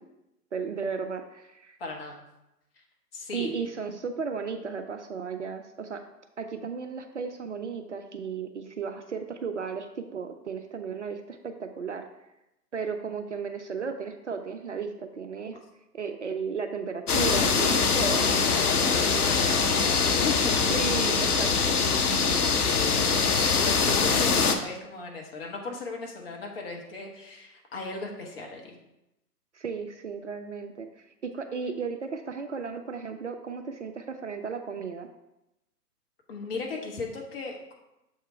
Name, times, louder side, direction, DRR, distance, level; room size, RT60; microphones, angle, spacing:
voice 1, 0.5-1.8 3.3-6.0 6.4-12.0 12.7-15.6 15.9-18.4 20.7-21.8 29.5-35.1, right 5 dB, 50° right, 6 dB, 0.5 m, -34 dB
voice 2, 1.8-2.2 2.8-2.9 3.1-3.6 18.7-20.6 22.5-28.8 36.3-37.7, left 3 dB, 35° left, 0 dB, 1.2 m, -37 dB
sound 1, 17.1-24.6, left 5 dB, 65° left, 0.8 m, -23 dB
6.9 x 3.6 x 4.3 m, 0.91 s
figure-of-eight pair, 135°, 48 cm